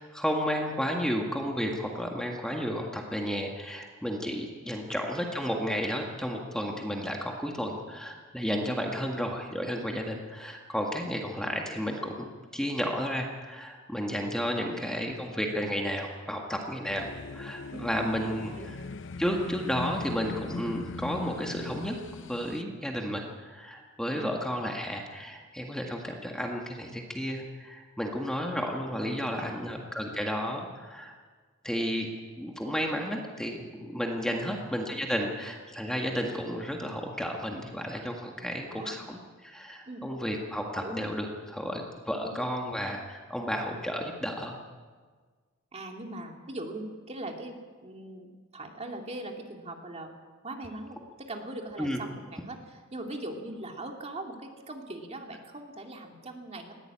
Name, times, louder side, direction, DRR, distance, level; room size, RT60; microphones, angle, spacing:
voice 1, 0.0-12.3 12.5-18.8 19.2-22.0 22.3-31.1 31.6-32.1 32.4-44.5 51.8-52.0, equal, 5° left, 1 dB, 1.7 m, -32 dB
sound 1, 16.8-22.6, left 3 dB, 65° left, 0.8 m, -40 dB
voice 2, 17.7-18.1 18.4-18.7 24.1-24.3 29.2-29.6 34.4-34.6 38.4-38.9 39.9-40.0 40.7-41.0 42.2-42.3 45.7-50.1 50.4-56.7, right 1 dB, 30° right, 2 dB, 2.5 m, -41 dB
20.0 x 16.0 x 8.8 m, 1.5 s
head